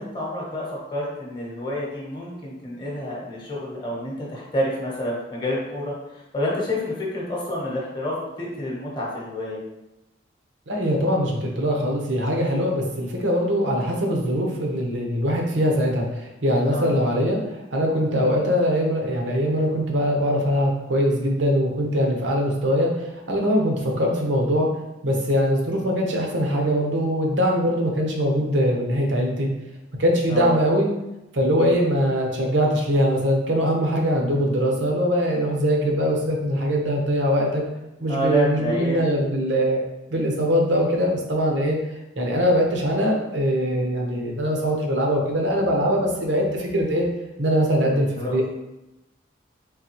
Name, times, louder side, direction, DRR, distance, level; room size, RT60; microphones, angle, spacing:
voice 1, 0.0-9.6 16.7-17.0 30.3-30.6 38.1-39.0 47.8-48.4, equal, 25° left, -3 dB, 0.9 m, -29 dB
voice 2, 10.7-24.7 25.0-29.5 30.0-30.9 31.3-37.6 38.0-39.8 40.1-41.8 42.2-47.1 47.4-48.4, equal, 75° right, 0 dB, 0.8 m, -22 dB
3.8 x 3.3 x 2.9 m, 0.94 s
head